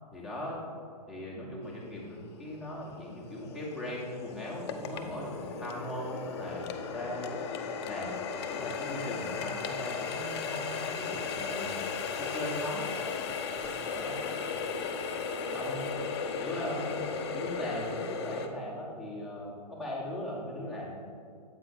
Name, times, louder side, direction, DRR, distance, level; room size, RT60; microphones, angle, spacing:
voice 1, 0.1-0.6 1.1-6.6 6.9-7.4 7.8-8.1 8.5-11.9 12.1-12.9 13.9-14.2 15.5-15.9 16.4-17.0 17.3-21.0, left 1 dB, ahead, -6 dB, 1.4 m, -39 dB
Water tap faucet, 2.0-2.1 2.7-18.5, left 5 dB, 40° left, 0.6 m, -36 dB
8.0 x 4.2 x 4.4 m, 2.2 s
hypercardioid pair, 135°, 21 cm